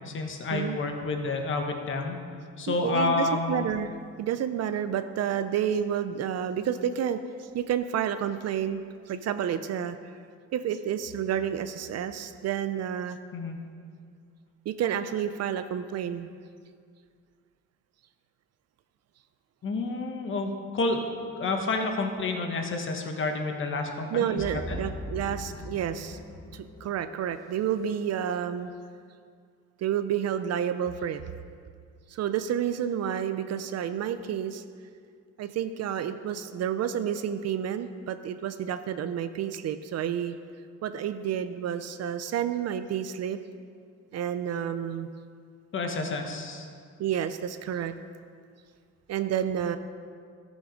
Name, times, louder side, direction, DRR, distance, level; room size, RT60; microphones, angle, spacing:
voice 1, 0.0-2.2 2.6-3.7 13.3-13.6 19.6-21.0 21.4-24.8 45.7-46.7, left 3 dB, 40° left, 4 dB, 1.1 m, -29 dB
voice 2, 2.7-8.8 9.1-10.0 10.5-13.2 14.7-16.3 24.1-26.2 26.5-28.7 29.8-31.2 32.1-34.6 35.4-40.3 40.8-43.4 44.1-45.1 47.0-47.9 49.1-49.8, right 9 dB, 55° right, 10 dB, 0.5 m, -30 dB
sound 1, 24.4-27.6, left 1 dB, 10° left, 1.1 m, -40 dB
14.0 x 6.2 x 5.1 m, 2.2 s
cardioid pair, 165°, 32 cm